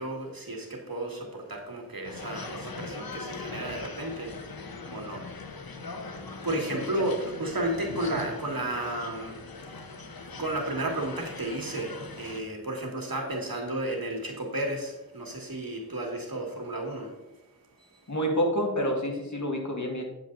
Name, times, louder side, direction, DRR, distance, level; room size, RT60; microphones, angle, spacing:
voice 1, 0.0-9.5 10.4-17.3 17.8-18.0, right 1 dB, 80° right, 1 dB, 2.0 m, -33 dB
sound 1, 2.0-12.4, left 3 dB, 85° left, 0.9 m, -41 dB
voice 2, 18.1-20.0, equal, 55° left, 1 dB, 2.1 m, -28 dB
9.0 x 7.3 x 4.0 m, 0.98 s
wide cardioid pair, 50°, 35 cm